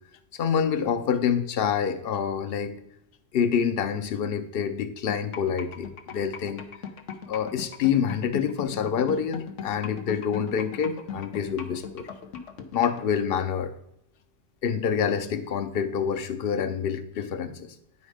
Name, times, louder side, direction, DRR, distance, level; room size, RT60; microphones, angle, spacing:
voice 1, 0.4-2.7 3.3-6.6 7.3-12.1 12.7-13.7 14.6-17.7, left 7 dB, 55° left, 10 dB, 0.9 m, -27 dB
sound 1, 5.1-13.0, left 7 dB, 85° left, 1.2 m, -37 dB
9.8 x 5.2 x 5.0 m, 0.78 s
omnidirectional pair, 1.2 m